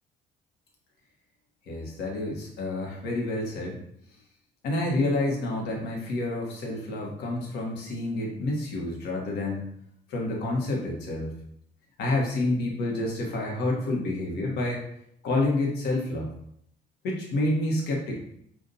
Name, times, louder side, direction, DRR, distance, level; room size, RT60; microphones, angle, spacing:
voice 1, 1.7-3.8 4.6-9.7 10.1-11.3 12.0-14.8 15.2-16.3 17.0-18.2, left 2 dB, 80° left, -1 dB, 1.1 m, -28 dB
5.3 x 2.5 x 2.7 m, 0.70 s
cardioid pair, 110°, 17 cm